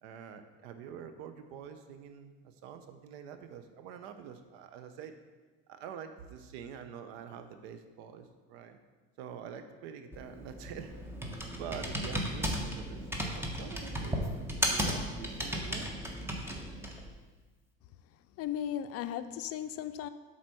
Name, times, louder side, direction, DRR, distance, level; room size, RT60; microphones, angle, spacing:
voice 1, 0.0-5.1 5.7-8.8 9.2-10.9 11.5-14.3 14.7-15.9, right 8 dB, 85° right, 8 dB, 0.8 m, -46 dB
Computer keyboard, 10.1-17.1, equal, 10° right, 1.2 m, -35 dB
voice 2, 18.4-20.1, left 10 dB, 55° left, 12 dB, 0.5 m, -36 dB
7.6 x 4.2 x 6.1 m, 1.3 s
supercardioid pair, 95°, 30 cm